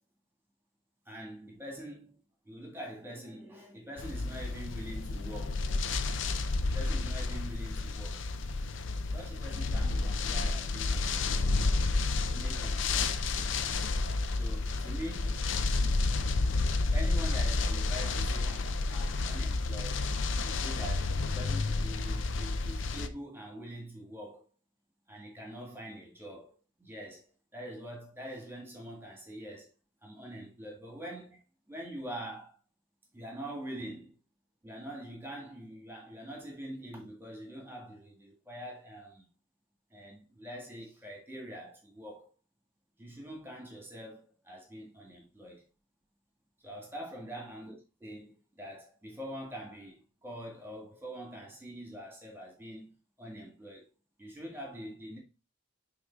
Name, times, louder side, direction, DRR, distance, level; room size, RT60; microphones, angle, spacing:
voice 1, 1.1-2.2 2.5-5.9 6.7-8.3 9.1-11.6 12.3-13.6 14.4-15.4 16.9-20.0 20.4-24.5 25.1-29.7 30.0-31.4 31.7-32.6 33.1-34.2 34.6-39.3 39.9-42.3 43.0-45.7 46.6-52.9 53.2-53.9 54.2-55.2, equal, 10° right, 1.7 m, -44 dB
sound 1, 4.0-23.1, left 3 dB, 65° left, 0.5 m, -30 dB
6.4 x 3.9 x 4.5 m
head